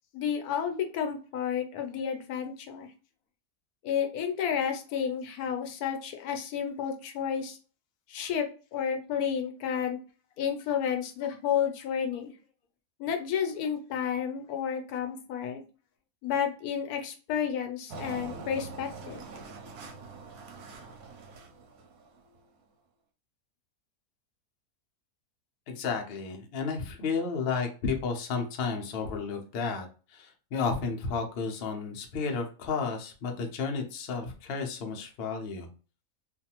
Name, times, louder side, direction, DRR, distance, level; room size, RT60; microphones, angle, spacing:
voice 1, 0.1-2.9 3.8-7.6 8.1-10.0 10.4-12.3 13.0-15.6 16.2-19.2, left 8 dB, 80° left, 5 dB, 1.1 m, -31 dB
Engine, 17.9-22.4, right 4 dB, 90° right, 1.1 m, -44 dB
voice 2, 25.7-35.7, left 5 dB, 60° left, 3 dB, 0.6 m, -32 dB
2.6 x 2.3 x 2.8 m, 0.35 s
omnidirectional pair, 1.6 m